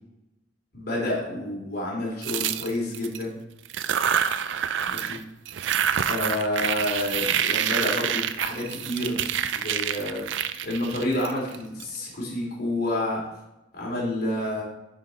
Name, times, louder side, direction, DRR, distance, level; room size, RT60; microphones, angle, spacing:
voice 1, 0.7-3.3 4.9-5.2 6.1-9.2 9.5-10.2 10.6-13.2 13.7-14.6, left 1 dB, 55° left, -4 dB, 3.3 m, -29 dB
sound 1, 2.2-3.2 3.6-5.2 5.4-11.8, right 9 dB, 70° right, 0.5 m, -27 dB
10.5 x 5.6 x 4.1 m, 0.92 s
head